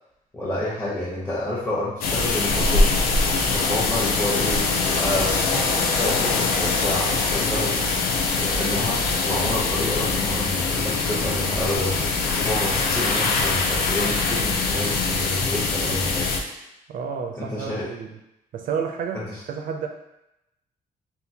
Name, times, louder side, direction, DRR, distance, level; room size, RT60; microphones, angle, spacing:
voice 1, 0.3-3.0 3.5-7.8 8.3-12.0 12.4-16.3 17.3-17.9 19.1-19.4, left 1 dB, 15° left, -9 dB, 0.8 m, -29 dB
sound 1, 2.0-16.4, left 3 dB, 85° left, 0.5 m, -23 dB
voice 2, 16.9-18.2 18.5-19.9, right 6 dB, 70° right, 4 dB, 0.4 m, -30 dB
3.6 x 2.4 x 2.8 m, 0.87 s
cardioid pair, 125°, 15 cm